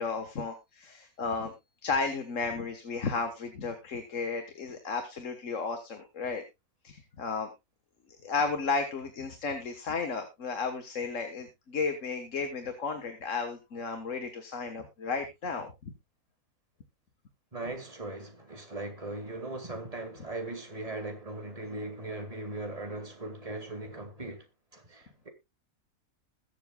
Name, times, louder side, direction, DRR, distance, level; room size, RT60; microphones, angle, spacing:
voice 1, 0.0-1.5 1.8-6.4 6.8-7.5 8.2-15.9, left 4 dB, 60° left, 1.7 m, -33 dB
voice 2, 17.5-24.4 24.7-25.3, right 2 dB, 25° right, 2.3 m, -39 dB
21.5 x 7.2 x 2.3 m
omnidirectional pair, 1.5 m